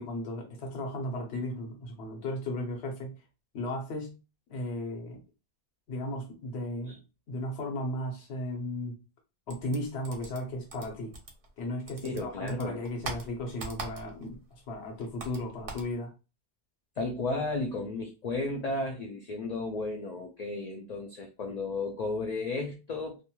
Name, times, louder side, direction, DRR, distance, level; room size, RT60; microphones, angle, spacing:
voice 1, 0.0-3.1 3.5-4.2 4.5-5.2 5.9-6.9 7.3-9.0 9.5-11.2 11.6-14.4 14.7-16.1, left 1 dB, 75° left, 1 dB, 1.1 m, -35 dB
sound 1, 9.5-11.6 11.9-14.4 14.6-15.9, right 3 dB, 60° right, 0.8 m, -41 dB
voice 2, 12.0-12.8 17.0-23.2, left 2 dB, 55° left, 2 dB, 0.5 m, -33 dB
2.9 x 2.5 x 2.2 m, 0.29 s
omnidirectional pair, 1.1 m